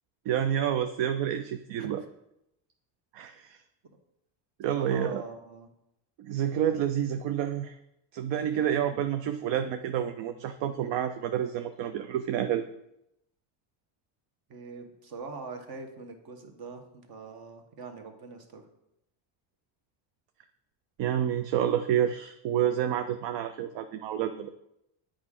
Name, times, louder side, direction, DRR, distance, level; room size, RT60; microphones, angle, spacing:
voice 1, 0.3-2.0 3.1-3.6 4.6-5.2 6.2-7.8 8.1-12.7 21.0-24.5, right 10 dB, 65° right, 9 dB, 0.6 m, -29 dB
voice 2, 4.7-5.7 8.4-8.8 14.5-18.7, right 4 dB, 50° right, 5 dB, 1.2 m, -43 dB
8.2 x 5.0 x 3.7 m, 0.82 s
cardioid pair, 120°, 47 cm